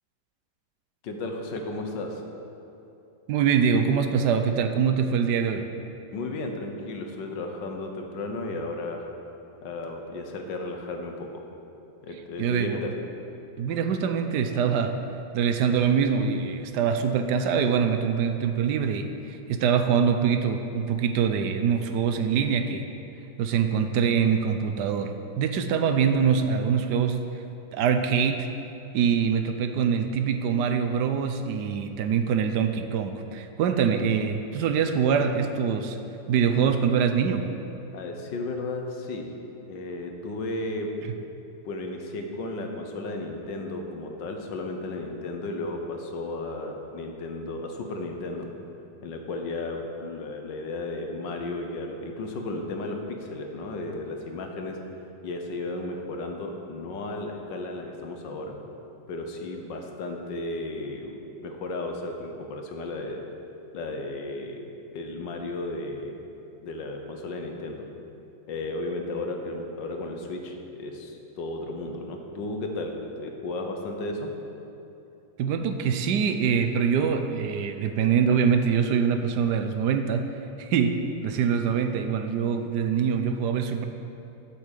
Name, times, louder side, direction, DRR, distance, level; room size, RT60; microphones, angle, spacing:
voice 1, 1.0-2.2 6.1-9.0 9.6-11.4 12.0-12.9 37.9-39.3 39.7-40.9 41.7-48.5 49.0-54.8 55.2-58.6 59.1-63.3 63.7-64.7 64.9-66.2 66.6-67.8 68.5-74.3, left 2 dB, 80° left, 3 dB, 1.7 m, -34 dB
voice 2, 3.3-5.7 12.4-12.8 13.6-15.0 15.3-22.8 23.4-27.2 27.7-28.5 28.9-36.0 36.3-37.5 75.4-80.3 80.6-83.8, right 7 dB, 75° right, 7 dB, 1.2 m, -24 dB
8.3 x 7.5 x 7.4 m, 2.9 s
omnidirectional pair, 1.9 m